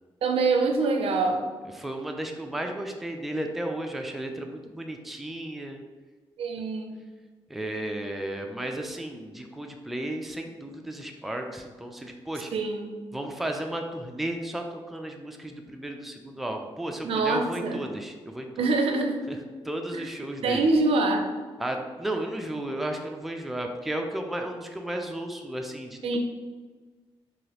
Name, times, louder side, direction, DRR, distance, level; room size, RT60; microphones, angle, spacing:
voice 1, 0.2-1.4 6.4-7.0 12.5-12.9 17.0-17.8 18.6-19.2 19.9-20.1 20.4-21.3 26.0-26.2, right 3 dB, 70° right, 4 dB, 0.4 m, -25 dB
voice 2, 1.8-5.8 7.5-12.5 13.1-18.7 19.3-19.4 19.6-20.7 21.6-26.2, right 1 dB, ahead, 3 dB, 0.3 m, -34 dB
2.9 x 2.4 x 2.8 m, 1.4 s
cardioid pair, 70°, 10 cm